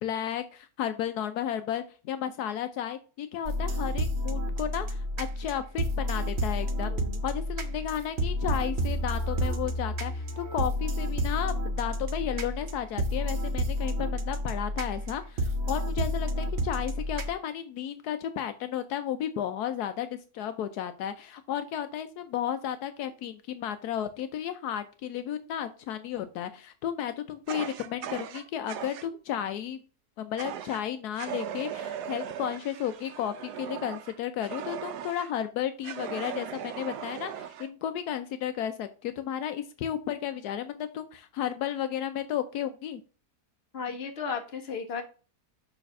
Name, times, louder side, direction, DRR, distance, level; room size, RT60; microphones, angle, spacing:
voice 1, 0.0-6.9 7.2-29.8 30.2-43.0, left 10 dB, 80° left, 10 dB, 1.1 m, -33 dB
sound 1, 3.5-17.3, equal, 50° right, 1.1 m, -30 dB
voice 2, 6.9-7.2 43.7-45.0, left 5 dB, 40° left, 5 dB, 1.4 m, -35 dB
Fire, 27.5-29.1 30.4-30.8 31.2-35.3 35.8-37.7, right 9 dB, 85° right, 1.2 m, -38 dB
6.7 x 3.3 x 5.8 m, 0.36 s
omnidirectional pair, 1.7 m